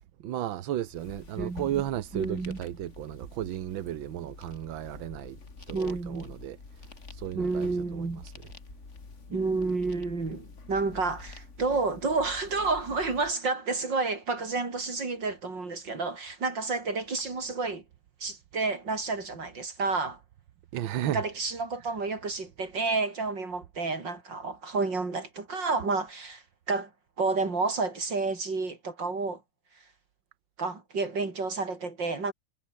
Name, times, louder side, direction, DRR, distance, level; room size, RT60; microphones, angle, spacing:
voice 1, 0.2-5.4 5.7-8.3 20.7-21.2, right 12 dB, 85° right, 1.7 m, -34 dB
sound 1, 0.9-13.3, left 4 dB, 35° left, 2.8 m, -47 dB
voice 2, 1.4-1.8 2.1-2.6 5.7-6.3 7.3-8.2 9.3-17.8 18.2-20.2 21.0-26.9 27.2-29.4 30.6-32.3, right 3 dB, 65° right, 5.0 m, -30 dB
omnidirectional pair, 2.1 m